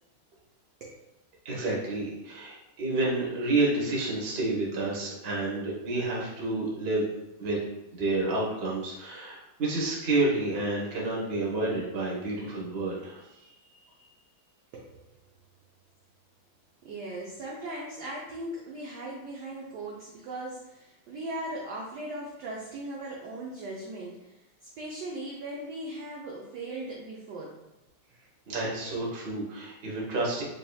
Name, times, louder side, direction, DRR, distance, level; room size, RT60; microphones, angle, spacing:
voice 1, 1.4-7.1 7.4-7.6 7.9-13.2 28.5-30.4, right 2 dB, 40° right, -4 dB, 1.0 m, -29 dB
voice 2, 14.7-15.1 16.8-24.4 24.8-27.6 28.9-29.0, right 1 dB, 70° right, -3 dB, 1.0 m, -38 dB
5.2 x 2.9 x 2.2 m, 0.94 s
omnidirectional pair, 2.3 m